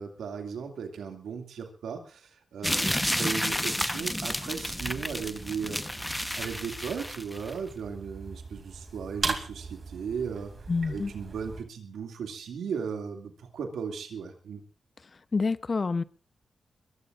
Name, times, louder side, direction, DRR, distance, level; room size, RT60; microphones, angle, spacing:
voice 1, 0.0-5.8 6.4-10.5 10.8-14.6, right 6 dB, 85° right, 2.4 m, -36 dB
sound 1, 2.6-7.5, left 1 dB, 10° left, 1.1 m, -31 dB
sound 2, 4.6-11.6, right 4 dB, 50° right, 2.8 m, -39 dB
voice 2, 10.7-11.1 15.3-16.0, left 4 dB, 45° left, 0.8 m, -27 dB
22.5 x 20.5 x 2.6 m
supercardioid pair, 50°, 0 cm